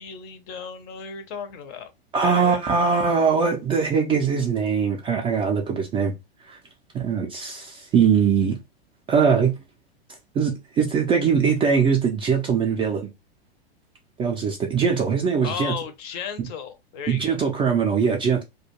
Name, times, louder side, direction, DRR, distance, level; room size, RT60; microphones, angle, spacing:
voice 1, 0.0-1.9 2.2-2.6 15.4-17.4, left 7 dB, 40° left, 0.6 m, -35 dB
voice 2, 2.1-6.1 6.5-6.6 6.9-8.6 9.1-9.5 10.3-13.1 14.2-15.7 16.4-16.5 17.1-18.4, right 6 dB, 15° right, 0.3 m, -21 dB
2.3 x 2.2 x 2.8 m
hypercardioid pair, 100°, 31 cm